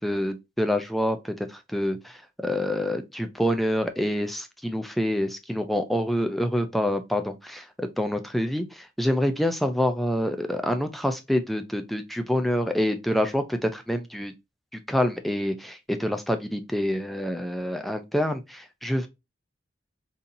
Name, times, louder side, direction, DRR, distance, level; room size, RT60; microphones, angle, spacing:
voice 1, 0.0-2.1 2.4-8.6 9.0-14.3 14.7-19.1, equal, ahead, 0.3 m, -26 dB
3.9 x 2.7 x 2.5 m
head